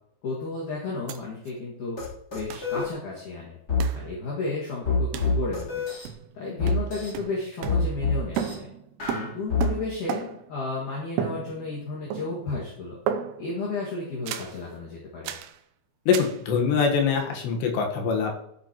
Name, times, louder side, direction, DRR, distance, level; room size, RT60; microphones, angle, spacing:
voice 1, 0.2-2.0 2.3-3.6 3.9-5.8 6.3-8.7 9.1-13.0 13.4-15.3, left 3 dB, 50° left, -5 dB, 2.9 m, -33 dB
sound 1, 1.1-1.2 1.5-1.6 2.5-2.7 3.8-4.1 5.1-5.4 6.0-6.4 6.7-8.1 8.4-10.5 11.2-11.8 12.1-12.6 13.1-13.6 14.3-14.6 15.2-15.6 16.1-16.4, right 8 dB, 80° right, 2.5 m, -34 dB
sound 2, 2.0-2.1 2.3-2.9 3.7-3.9 4.8-6.1 6.6-7.1 7.7-8.5 9.0-9.7, left 5 dB, 20° left, 3.3 m, -26 dB
voice 2, 16.1-18.3, left 6 dB, 70° left, 2 dB, 3.4 m, -23 dB
14.5 x 7.9 x 3.0 m, 0.76 s
omnidirectional pair, 5.4 m